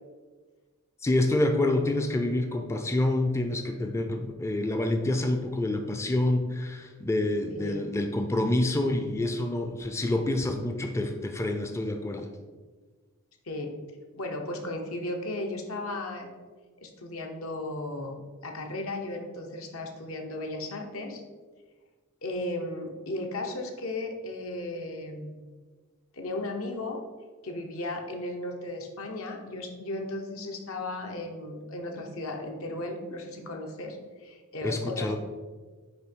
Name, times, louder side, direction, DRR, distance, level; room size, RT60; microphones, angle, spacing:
voice 1, 1.0-12.3 34.6-35.2, left 1 dB, 15° left, 5 dB, 0.4 m, -27 dB
voice 2, 7.5-7.8 13.5-13.7 14.1-16.3 16.8-18.1 18.4-21.2 22.2-25.4 26.1-27.0 27.4-35.2, left 2 dB, 75° left, 2 dB, 1.0 m, -35 dB
9.1 x 3.0 x 4.4 m, 1.4 s
head